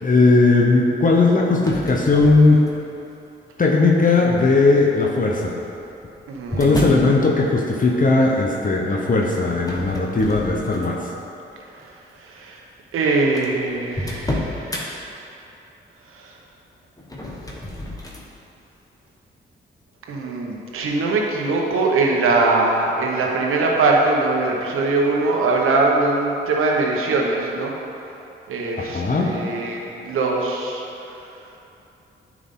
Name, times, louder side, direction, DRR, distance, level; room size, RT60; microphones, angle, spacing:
voice 1, 0.0-2.7 3.6-5.6 6.6-11.1 28.8-29.4, left 3 dB, 40° left, -1 dB, 0.9 m, -17 dB
sound 1, 1.5-3.0 3.7-4.1 5.2-7.1 9.6-11.1 11.6-11.9 12.6-12.7 12.9-13.0 13.3-14.9 17.0-18.3, left 1 dB, 15° left, 1.5 m, -31 dB
voice 2, 6.3-7.0 12.2-12.6 12.9-14.9 20.1-27.7 28.5-30.8, right 3 dB, 80° right, -1 dB, 1.1 m, -21 dB
9.7 x 4.9 x 3.7 m, 2.9 s
supercardioid pair, 55°, 21 cm